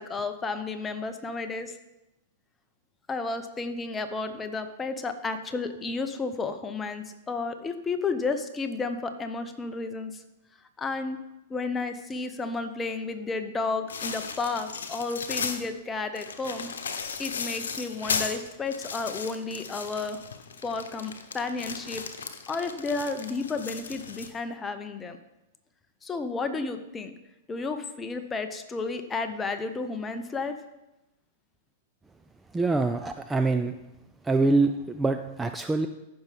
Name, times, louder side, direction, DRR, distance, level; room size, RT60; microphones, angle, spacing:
voice 1, 0.0-1.8 3.1-10.2 10.8-11.2 11.5-16.7 17.2-20.2 20.6-22.0 22.5-25.2 26.0-27.1 27.5-30.6, left 3 dB, 15° left, 8 dB, 0.9 m, -32 dB
sound 1, 13.9-15.7 16.2-24.3, left 5 dB, 75° left, 1.0 m, -36 dB
voice 2, 32.5-33.7 34.3-35.9, right 3 dB, 10° right, 7 dB, 0.5 m, -25 dB
14.5 x 5.9 x 3.6 m, 0.96 s
hypercardioid pair, 105°, 0 cm